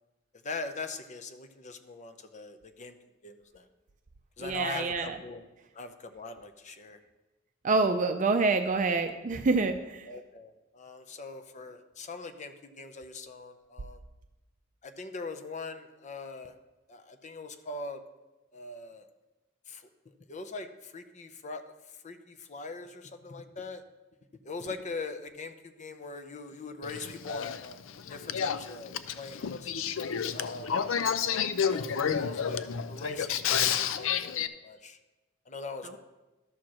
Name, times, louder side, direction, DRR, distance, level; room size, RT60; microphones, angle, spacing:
voice 1, 0.4-3.0 3.2-3.7 4.4-5.4 5.7-7.0 10.1-14.0 14.8-16.6 16.9-18.0 18.5-19.1 19.7-23.8 24.4-27.8 28.1-29.7 30.3-30.8 31.2-33.5 33.7-34.3 34.6-35.0 35.5-36.0, left 3 dB, 40° left, 8 dB, 0.7 m, -42 dB
voice 2, 4.4-5.2 7.6-10.1 35.8-36.0, right 3 dB, 40° right, 7 dB, 0.5 m, -27 dB
Male speech man speaking / Female speech woman speaking / Conversation, 26.8-34.5, left 7 dB, 80° left, 0.4 m, -30 dB
12.5 x 4.4 x 6.3 m, 1.1 s
head